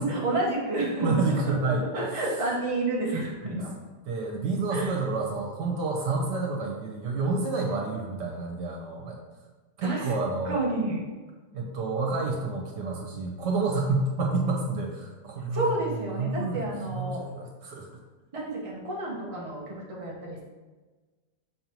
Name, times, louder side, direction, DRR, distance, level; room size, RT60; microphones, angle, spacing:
voice 1, 0.0-1.5 1.9-3.7 4.7-5.0 9.8-10.1 10.4-11.0 15.5-17.2 18.3-20.5, right 2 dB, 20° right, -4 dB, 1.2 m, -30 dB
voice 2, 1.0-1.9 3.5-3.6 4.1-9.2 9.8-10.6 11.5-16.7 16.9-17.9, right 3 dB, 80° right, 0 dB, 1.7 m, -29 dB
6.6 x 5.4 x 3.0 m, 1.3 s
omnidirectional pair, 1.9 m